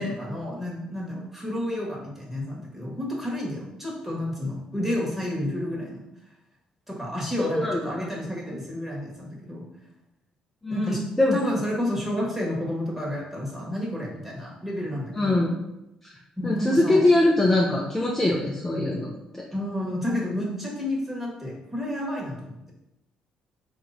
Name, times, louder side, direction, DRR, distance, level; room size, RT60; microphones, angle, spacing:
voice 1, 0.2-6.0 6.9-9.6 10.7-11.0 11.3-15.4 16.4-17.0 19.5-22.5, left 1 dB, 10° right, -3 dB, 1.6 m, -30 dB
voice 2, 7.4-8.0 10.6-11.4 15.1-15.6 16.0-16.1 16.4-19.4, left 1 dB, 10° left, -3 dB, 0.6 m, -23 dB
4.7 x 2.9 x 3.9 m, 0.89 s
cardioid pair, 115°, 2 cm